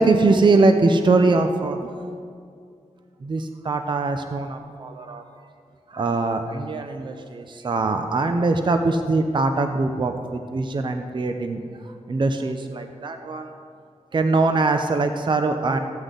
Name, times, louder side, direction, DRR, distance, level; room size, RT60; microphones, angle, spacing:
voice 1, 0.0-1.8 3.2-5.2 5.9-11.6 12.1-13.5 14.1-15.8, right 3 dB, 40° right, 6 dB, 0.5 m, -22 dB
14.5 x 8.1 x 3.9 m, 2.3 s
wide cardioid pair, 130°, 12 cm